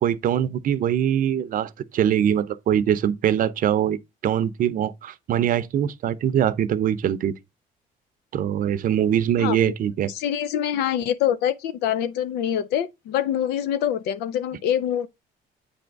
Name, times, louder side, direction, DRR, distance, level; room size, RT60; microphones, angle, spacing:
voice 1, 0.0-7.3 8.3-10.1, right 10 dB, 55° right, 0.7 m, -23 dB
voice 2, 9.4-9.7 10.1-15.1, left 10 dB, 85° left, 0.6 m, -25 dB
8.5 x 3.5 x 5.2 m
cardioid pair, 110°, 17 cm